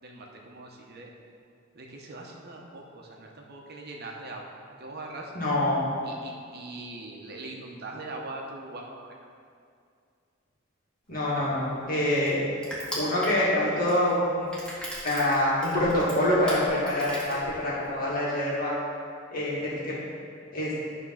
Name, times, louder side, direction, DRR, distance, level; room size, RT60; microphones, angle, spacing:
voice 1, 0.0-1.1 1.7-4.5 4.8-5.3 6.0-9.1, right 2 dB, 55° right, 0 dB, 1.1 m, -41 dB
voice 2, 5.3-5.8 11.1-12.4 13.0-14.6 15.0-18.7 19.3-20.0 20.5-20.7, left 1 dB, 45° left, -7 dB, 2.2 m, -25 dB
Crushing, 11.1-17.9, equal, 5° left, 2.0 m, -40 dB
10.5 x 3.7 x 5.8 m, 2.3 s
head